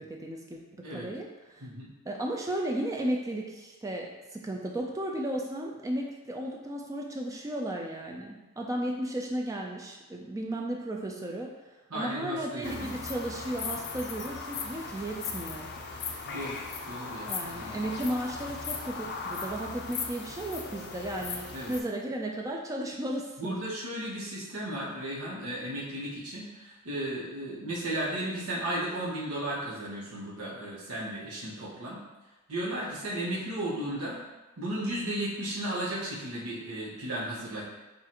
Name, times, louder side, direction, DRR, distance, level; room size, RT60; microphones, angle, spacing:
voice 1, 0.0-1.7 2.0-15.7 17.3-23.6, right 1 dB, 15° right, 0 dB, 0.3 m, -34 dB
voice 2, 11.9-12.9 16.2-17.8 21.5-21.7 23.4-32.0 32.5-34.2 34.6-37.6, right 1 dB, 90° right, -7 dB, 1.3 m, -35 dB
sound 1, 12.6-21.8, left 4 dB, 50° left, 0.5 m, -38 dB
6.9 x 2.5 x 2.9 m, 1.1 s
head